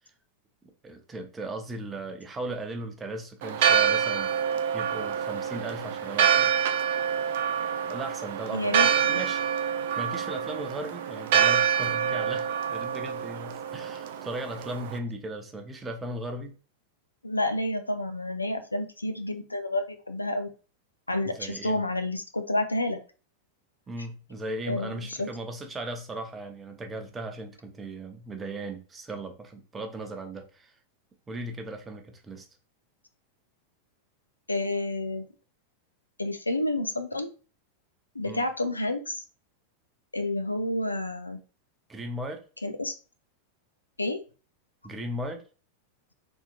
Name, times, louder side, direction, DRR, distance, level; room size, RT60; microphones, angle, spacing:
voice 1, 0.6-4.3 4.7-6.5 7.8-9.4 10.0-16.5 21.3-21.8 23.9-30.7 31.3-32.5 38.2-38.5 41.9-42.4 44.8-45.4, right 1 dB, 15° right, 5 dB, 0.6 m, -37 dB
Church bell, 3.4-15.0, right 8 dB, 55° right, 0.3 m, -26 dB
voice 2, 8.5-8.9 17.2-20.5 21.1-23.0 24.7-25.3 34.5-35.3 36.2-37.3 38.1-39.2 40.1-41.4 42.6-43.0 44.0-44.2, left 1 dB, 80° left, 9 dB, 0.4 m, -29 dB
3.5 x 2.7 x 2.5 m, 0.36 s
figure-of-eight pair, 90°, 0 cm